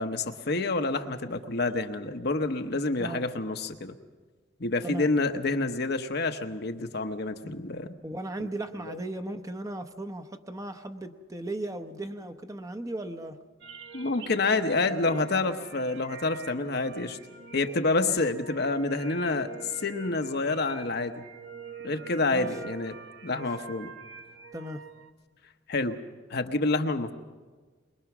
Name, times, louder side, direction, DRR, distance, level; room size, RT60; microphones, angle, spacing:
voice 1, 0.0-3.9 4.6-7.9 8.4-8.5 8.9-9.0 13.9-17.2 17.5-21.2 21.8-22.9 23.2-23.9 25.7-26.0 26.3-27.1, left 3 dB, 60° left, 6 dB, 1.0 m, -28 dB
voice 2, 8.0-13.4 18.0-18.1 22.3-22.5 23.3-23.4 24.5-24.8, right 1 dB, 15° right, 7 dB, 0.9 m, -37 dB
sound 1, 13.6-25.1, right 5 dB, 65° right, 1.0 m, -45 dB
22.5 x 21.5 x 6.1 m, 1.4 s
head